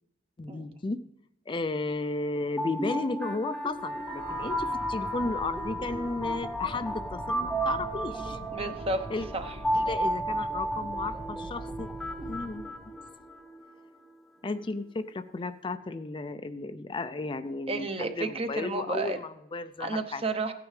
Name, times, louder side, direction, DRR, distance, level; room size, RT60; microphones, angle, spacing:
voice 1, 0.4-1.1 1.5-8.4 9.1-9.3 9.7-11.9 12.3-12.7 14.4-20.2, left 3 dB, 30° left, 10 dB, 0.4 m, -34 dB
sound 1, 2.4-13.4, equal, ahead, 0.9 m, -33 dB
sound 2, 3.7-13.2, right 1 dB, 80° right, 0.8 m, -44 dB
sound 3, 3.8-8.5, right 6 dB, 60° right, 1.3 m, -46 dB
voice 2, 8.5-9.1 9.3-9.5 17.7-19.2 19.8-20.5, right 2 dB, 35° right, 8 dB, 0.8 m, -31 dB
16.0 x 9.5 x 3.3 m, 0.88 s
head